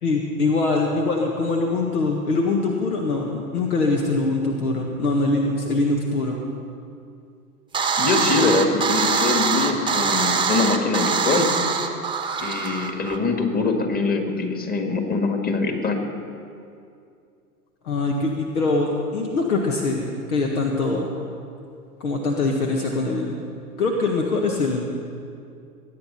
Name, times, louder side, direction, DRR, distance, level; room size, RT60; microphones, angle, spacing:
voice 1, 0.0-6.4 17.8-21.1 22.0-23.4 23.8-24.8, left 3 dB, 65° left, 1 dB, 1.7 m, -23 dB
sound 1, 7.7-13.2, right 5 dB, 10° right, 1.1 m, -23 dB
voice 2, 8.0-11.5 12.4-16.0, left 3 dB, 20° left, 4 dB, 1.9 m, -23 dB
21.5 x 9.8 x 5.6 m, 2.5 s
figure-of-eight pair, 100°, 46 cm